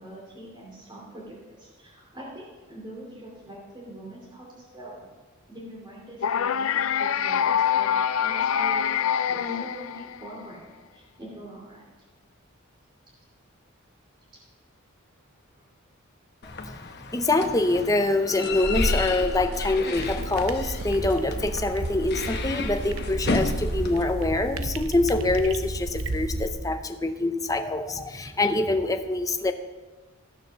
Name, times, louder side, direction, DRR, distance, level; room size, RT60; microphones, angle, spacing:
voice 1, 0.0-5.0 5.5-10.7 10.9-11.9 14.3-14.4 15.5-15.6, right 1 dB, 20° right, -5 dB, 2.6 m, -43 dB
sound 1, 6.2-10.4, left 8 dB, 75° left, 0.4 m, -25 dB
sound 2, 16.4-24.0, left 2 dB, 50° left, 1.0 m, -31 dB
voice 2, 16.4-29.5, left 2 dB, 15° left, 7 dB, 0.7 m, -25 dB
sound 3, 20.0-26.5, right 2 dB, 80° right, 0.8 m, -32 dB
15.0 x 6.8 x 6.2 m, 1.3 s
head